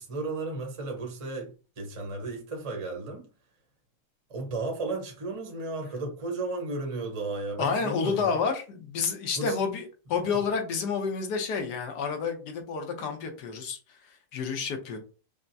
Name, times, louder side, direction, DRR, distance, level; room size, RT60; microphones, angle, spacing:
voice 1, 0.0-3.3 4.3-8.3 9.3-9.5, right 2 dB, 30° right, 0.7 m, -34 dB
voice 2, 7.6-15.0, left 5 dB, 70° left, 1.3 m, -30 dB
5.7 x 2.0 x 2.7 m
omnidirectional pair, 1.9 m